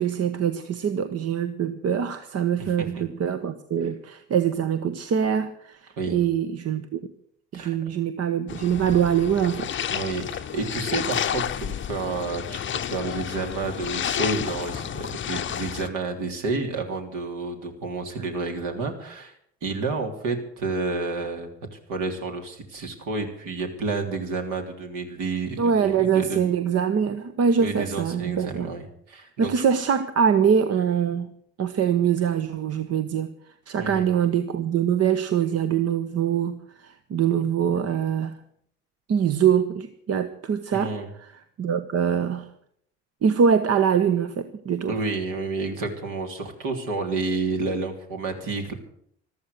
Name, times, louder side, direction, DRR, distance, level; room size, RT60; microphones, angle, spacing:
voice 1, 0.0-7.0 7.5-9.7 25.6-28.7 29.4-31.3 31.6-33.3 33.7-38.4 39.1-41.3 41.6-42.5 43.2-45.0, right 7 dB, 45° right, 11 dB, 1.1 m, -23 dB
voice 2, 2.6-3.0 6.0-6.2 7.5-7.7 9.9-19.3 19.6-26.4 27.6-29.6 33.8-34.1 40.7-41.1 44.9-48.7, right 3 dB, 60° right, 4 dB, 3.3 m, -30 dB
sound 1, 8.5-15.9, left 9 dB, 35° left, 0.8 m, -31 dB
14.5 x 13.0 x 6.7 m, 0.68 s
hypercardioid pair, 60°, 34 cm